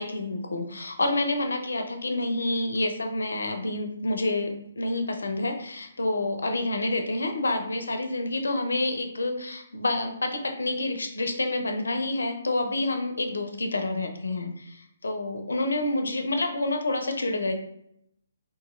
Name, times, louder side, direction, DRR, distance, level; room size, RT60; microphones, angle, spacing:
voice 1, 0.0-17.5, left 2 dB, 75° left, 5 dB, 0.5 m, -28 dB
2.8 x 2.6 x 2.4 m, 0.76 s
figure-of-eight pair, 135°, 0 cm